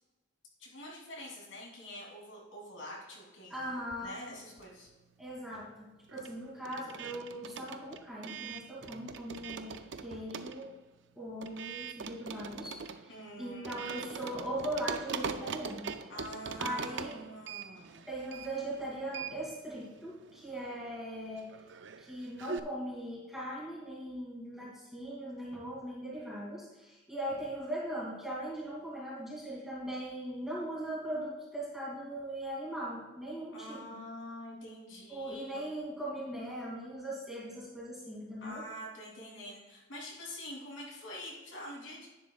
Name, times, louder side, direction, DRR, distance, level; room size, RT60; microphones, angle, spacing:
voice 1, 0.6-3.7 4.0-4.9 13.1-14.0 16.1-18.1 33.5-35.7 38.4-42.1, equal, 75° left, -3 dB, 3.2 m, -46 dB
voice 2, 3.5-4.1 5.2-9.7 10.0-10.7 11.1-15.9 16.6-17.2 18.1-21.5 22.0-34.0 35.1-38.6, right 1 dB, ahead, -6 dB, 2.6 m, -40 dB
sound 1, 3.8-5.0 5.3-22.6, right 6 dB, 60° right, 0.5 m, -43 dB
10.5 x 10.0 x 2.4 m, 1.1 s
head